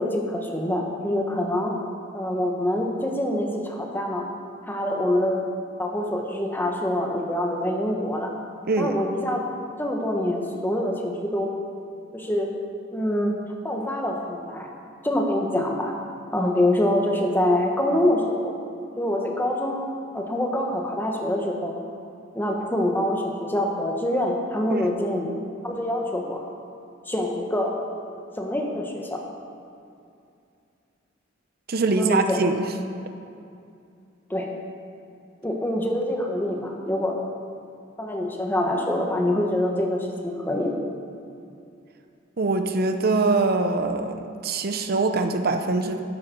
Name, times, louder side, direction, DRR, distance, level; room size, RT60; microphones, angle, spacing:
voice 1, 0.0-1.7 2.1-4.2 4.7-5.4 5.8-8.3 8.8-9.4 9.8-11.5 12.1-12.5 12.9-13.3 13.6-14.7 15.0-15.9 16.3-18.5 19.0-21.8 22.3-25.3 25.6-26.4 27.1-27.8 28.4-29.2 31.9-32.5 34.3-34.5 35.4-37.2 38.0-40.7, left 1 dB, 10° left, 0 dB, 1.4 m, -25 dB
voice 2, 31.7-32.7 42.4-46.0, right 3 dB, 50° right, 6 dB, 0.7 m, -23 dB
12.5 x 10.5 x 5.5 m, 2.5 s
head